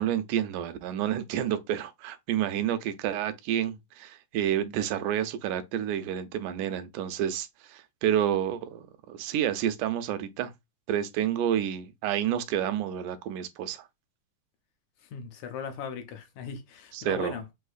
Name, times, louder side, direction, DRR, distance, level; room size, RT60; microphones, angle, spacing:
voice 1, 0.0-10.5 10.9-13.9 16.9-17.5, right 10 dB, 85° right, 2.0 m, -29 dB
voice 2, 15.0-17.4, left 6 dB, 75° left, 2.1 m, -38 dB
6.3 x 2.7 x 2.4 m
omnidirectional pair, 3.5 m